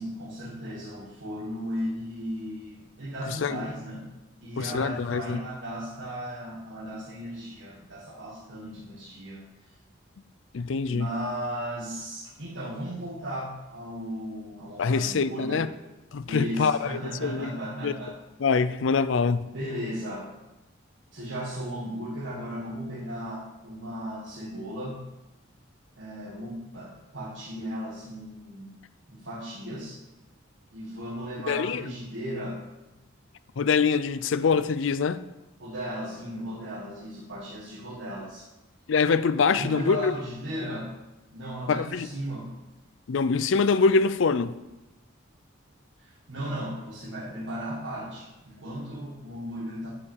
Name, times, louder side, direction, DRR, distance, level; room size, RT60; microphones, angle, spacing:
voice 1, 0.0-4.1 4.4-9.8 10.9-15.7 16.2-18.2 19.5-20.3 21.1-25.0 26.0-28.8 29.1-30.0 30.7-32.6 35.6-38.5 39.5-41.0 41.3-42.5 46.0-49.9, equal, 65° right, 1.6 m, -36 dB
voice 2, 3.3-3.7 4.6-5.4 10.5-11.1 14.8-15.7 16.1-17.5 17.8-17.9 18.4-19.5 31.5-31.9 33.6-35.2 38.9-40.1 40.6-40.7 41.7-42.1 43.1-44.5, left 5 dB, 70° left, 0.4 m, -24 dB
8.3 x 5.5 x 7.1 m
head